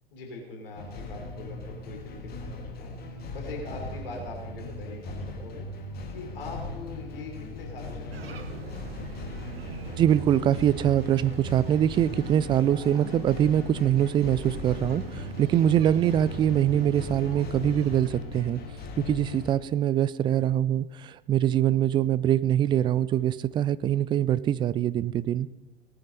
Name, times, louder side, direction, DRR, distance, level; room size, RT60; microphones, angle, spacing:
voice 1, 0.1-5.6 6.1-8.9, left 2 dB, 65° left, 1 dB, 3.6 m, -42 dB
sound 1, 0.8-19.5, left 2 dB, 30° left, 2.4 m, -39 dB
sound 2, 8.1-18.1, right 3 dB, 70° right, 1.6 m, -41 dB
voice 2, 10.0-18.6 19.0-25.5, right 10 dB, 15° right, 18 dB, 0.4 m, -24 dB
18.5 x 9.6 x 5.4 m, 1.1 s
figure-of-eight pair, 90°, 31 cm